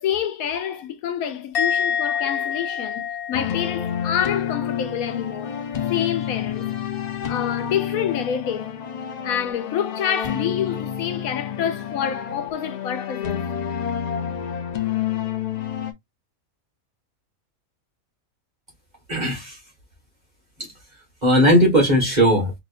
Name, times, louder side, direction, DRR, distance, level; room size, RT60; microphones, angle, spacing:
voice 1, 0.0-5.6 5.9-8.7 9.2-13.4, left 9 dB, 80° left, 1.1 m, -27 dB
Musical instrument, 1.5-4.9 5.2-5.6, left 8 dB, 30° left, 1.0 m, -28 dB
sound 1, 3.3-15.9, left 9 dB, 60° left, 0.4 m, -29 dB
voice 2, 19.1-19.6 21.2-22.6, equal, 30° right, 1.7 m, -17 dB
3.7 x 2.9 x 2.5 m
omnidirectional pair, 1.5 m